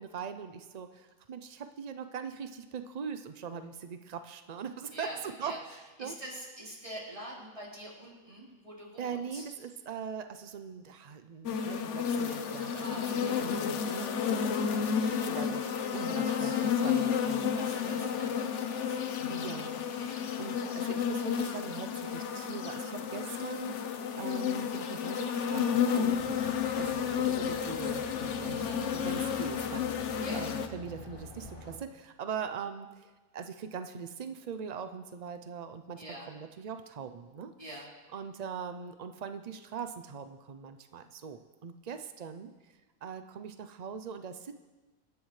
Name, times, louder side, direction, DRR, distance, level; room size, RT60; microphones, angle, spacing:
voice 1, 0.0-6.2 9.0-13.1 13.4-14.4 14.7-15.6 15.9-18.1 19.3-28.7 28.9-37.5 38.1-42.5 43.0-44.5, right 6 dB, 70° right, 9 dB, 0.3 m, -41 dB
voice 2, 4.9-5.6 6.0-9.4 12.8-13.4 16.2-17.3 17.5-19.1 20.0-20.2 28.4-28.8 30.2-30.5 36.0-36.3 37.6-37.9, equal, 20° right, -6 dB, 3.9 m, -45 dB
sound 1, 11.5-30.7, left 7 dB, 60° left, 1.0 m, -31 dB
sound 2, 26.0-31.8, left 1 dB, 40° left, 1.8 m, -47 dB
25.0 x 10.5 x 3.2 m, 1.2 s
omnidirectional pair, 1.5 m